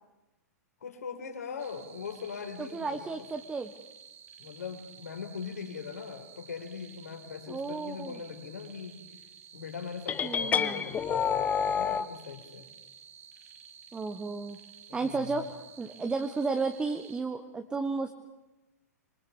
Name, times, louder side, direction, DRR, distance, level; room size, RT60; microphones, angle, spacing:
voice 1, 0.8-3.2 4.4-9.0 9.5-12.7 14.9-15.5, left 6 dB, 65° left, 4 dB, 4.7 m, -41 dB
sound 1, 1.6-17.2, right 7 dB, 55° right, 2.4 m, -53 dB
voice 2, 2.6-3.7 7.5-8.2 10.2-10.8 13.9-14.6 14.9-18.1, right 4 dB, 10° right, 6 dB, 1.2 m, -33 dB
sound 2, 10.1-12.1, left 7 dB, 15° left, 1.0 m, -28 dB
26.0 x 23.5 x 7.0 m, 1.0 s
figure-of-eight pair, 110°, 9 cm